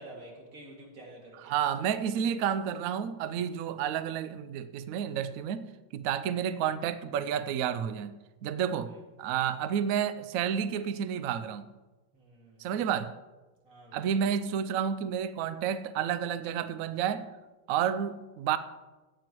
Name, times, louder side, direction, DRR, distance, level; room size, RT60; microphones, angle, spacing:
voice 1, 0.0-1.5 8.9-9.0 12.1-12.7 13.6-14.1, right 1 dB, 45° right, -2 dB, 2.7 m, -49 dB
voice 2, 1.3-8.1 8.4-8.9 9.2-11.7 12.6-13.1 13.9-17.3 17.7-18.6, right 8 dB, 85° right, 12 dB, 0.7 m, -30 dB
15.0 x 9.2 x 3.0 m, 1.2 s
omnidirectional pair, 2.0 m